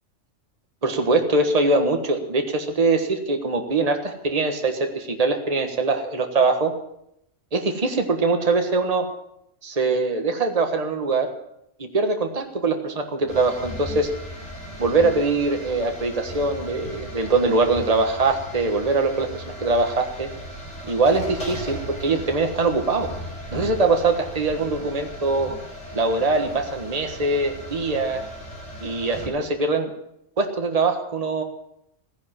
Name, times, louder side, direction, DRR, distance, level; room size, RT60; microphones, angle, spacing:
voice 1, 0.8-6.7 7.5-9.1 9.6-11.3 11.8-14.1 14.8-20.3 20.8-23.1 23.5-25.6 25.9-28.2 28.8-29.9 30.4-31.4, right 3 dB, 30° right, 5 dB, 1.5 m, -22 dB
sound 1, 13.3-29.3, equal, 30° left, 4.6 m, -37 dB
15.5 x 10.5 x 7.5 m, 0.78 s
omnidirectional pair, 1.3 m